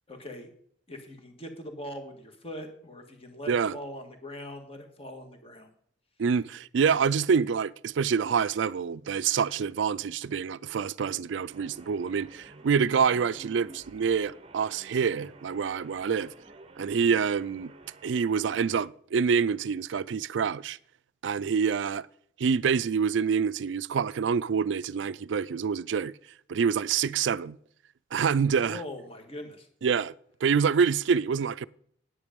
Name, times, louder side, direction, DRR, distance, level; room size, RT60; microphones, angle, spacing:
voice 1, 0.1-0.5 0.9-5.7 28.6-29.7, left 1 dB, 30° left, 1.7 m, -41 dB
voice 2, 3.5-3.8 6.2-16.3 16.8-17.7 18.0-20.8 21.2-22.1 22.4-26.1 26.5-27.6 28.1-28.8 29.8-30.1 30.4-31.7, right 6 dB, 70° right, 0.4 m, -26 dB
sound 1, 11.5-18.9, right 2 dB, 30° right, 0.7 m, -50 dB
10.0 x 9.0 x 5.2 m
head